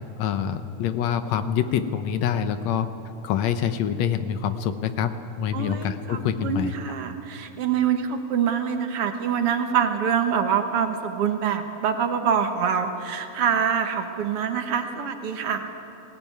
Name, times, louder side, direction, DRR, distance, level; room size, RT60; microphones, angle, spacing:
voice 1, 0.2-2.9 3.2-5.1 5.4-6.7, left 8 dB, 70° left, 10 dB, 1.9 m, -25 dB
voice 2, 5.5-15.7, right 7 dB, 55° right, 7 dB, 1.9 m, -25 dB
19.0 x 18.0 x 9.4 m, 2.7 s
omnidirectional pair, 3.6 m